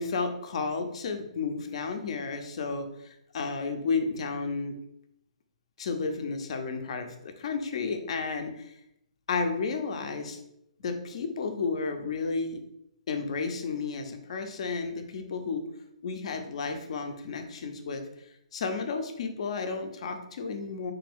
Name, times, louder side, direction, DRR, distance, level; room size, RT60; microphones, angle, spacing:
voice 1, 0.0-4.7 5.8-8.7 9.3-10.4 10.8-12.6 13.1-15.6 16.0-18.0 18.5-20.9, left 4 dB, 55° left, 6 dB, 0.6 m, -32 dB
3.4 x 3.3 x 3.5 m, 0.79 s
hypercardioid pair, 160°, 4 cm